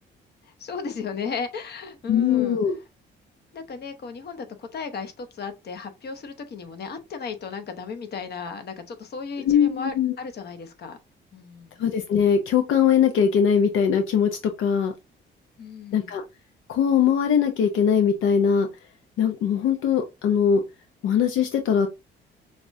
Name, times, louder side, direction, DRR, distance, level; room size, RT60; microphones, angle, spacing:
voice 1, 0.4-2.6 3.5-11.0 11.3-11.8 15.6-16.2, left 5 dB, 55° left, 1.0 m, -35 dB
voice 2, 2.1-2.8 9.4-10.1 11.8-14.3 14.6-14.9 15.9-16.2 16.7-18.7 19.2-20.6 21.0-21.9, left 7 dB, 80° left, 0.6 m, -21 dB
5.9 x 2.4 x 2.6 m
cardioid pair, 90°, 20 cm